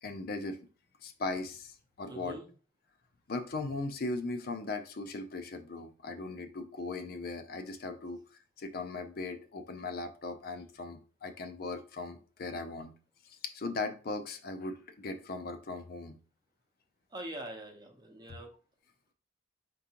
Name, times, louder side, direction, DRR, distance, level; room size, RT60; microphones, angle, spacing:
voice 1, 0.0-0.6 1.0-2.4 3.3-8.2 8.6-12.9 13.2-16.2, left 3 dB, 55° left, 7 dB, 0.5 m, -38 dB
voice 2, 2.0-2.5 17.1-18.5, right 1 dB, 25° right, 3 dB, 0.8 m, -43 dB
4.5 x 3.7 x 2.9 m, 0.36 s
head